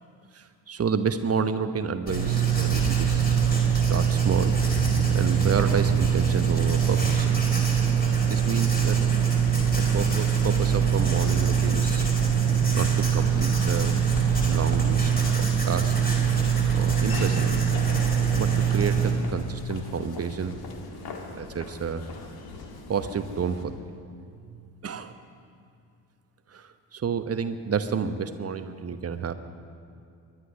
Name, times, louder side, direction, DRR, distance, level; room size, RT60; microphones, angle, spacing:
voice 1, 0.3-4.6 5.1-7.4 8.2-9.1 9.7-12.1 12.7-14.0 14.5-15.9 16.7-17.7 18.3-20.6 21.3-22.0 22.9-23.7 24.4-25.2 26.5-29.3, right 6 dB, 30° right, 10 dB, 1.1 m, -30 dB
Writing, 2.1-19.1, right 7 dB, 20° left, 5.0 m, -23 dB
Laughter / Walk footsteps, 16.1-23.6, left 3 dB, 50° left, 2.1 m, -40 dB
22.5 x 11.5 x 5.5 m, 2.5 s
figure-of-eight pair, 40°, 48 cm